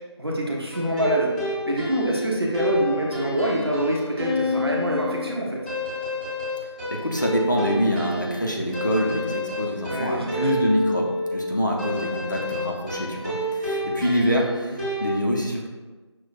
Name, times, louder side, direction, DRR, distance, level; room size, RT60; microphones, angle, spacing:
voice 1, 0.2-1.3 1.6-5.6 9.9-10.6 14.7-14.8, equal, 55° right, -2 dB, 0.8 m, -25 dB
sound 1, 0.7-15.1, left 1 dB, 15° right, 1.0 m, -29 dB
voice 2, 6.9-15.7, equal, 40° left, -1 dB, 0.5 m, -25 dB
6.0 x 2.1 x 2.4 m, 1.2 s
figure-of-eight pair, 175°, 15 cm